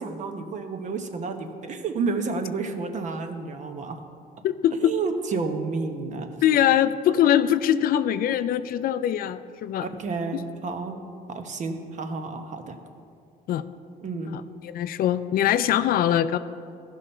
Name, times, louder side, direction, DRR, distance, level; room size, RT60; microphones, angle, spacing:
voice 1, 0.0-4.0 4.8-6.3 9.8-11.0 11.3-12.8 14.0-14.4, right 4 dB, 45° right, 6 dB, 0.9 m, -30 dB
voice 2, 4.4-4.9 6.4-9.9 10.3-10.4 13.5-13.6 14.3-16.4, left 10 dB, 60° left, 13 dB, 0.4 m, -22 dB
14.0 x 5.6 x 4.3 m, 2.4 s
cardioid pair, 110°, 17 cm